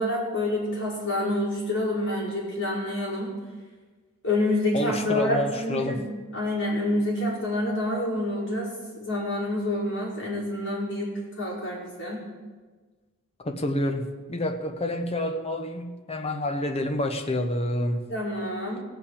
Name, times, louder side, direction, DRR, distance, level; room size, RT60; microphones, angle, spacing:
voice 1, 0.0-3.3 4.2-12.2 18.1-18.8, left 1 dB, 55° left, -6 dB, 5.1 m, -28 dB
voice 2, 4.7-6.0 13.4-18.0, left 1 dB, 30° left, 6 dB, 1.0 m, -28 dB
17.0 x 5.8 x 8.5 m, 1.4 s
head